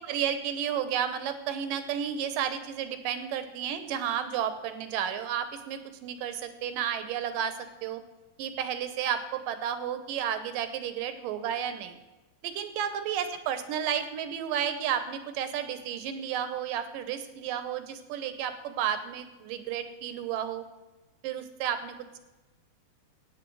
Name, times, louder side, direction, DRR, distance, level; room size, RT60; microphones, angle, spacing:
voice 1, 0.1-8.0 8.4-12.0 12.4-20.6 21.2-22.2, right 9 dB, 75° right, 10 dB, 2.4 m, -32 dB
15.0 x 9.4 x 4.7 m, 1.1 s
omnidirectional pair, 4.2 m